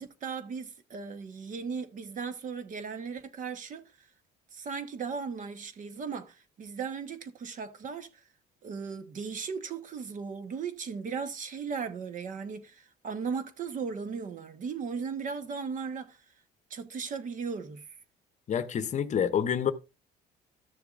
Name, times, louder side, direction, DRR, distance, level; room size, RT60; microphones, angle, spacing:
voice 1, 0.0-3.8 4.5-8.1 8.6-16.2 16.7-17.9, right 5 dB, 50° right, 1.2 m, -37 dB
voice 2, 18.5-19.7, left 8 dB, 45° left, 0.7 m, -27 dB
13.5 x 6.8 x 2.5 m
cardioid pair, 110°, 17 cm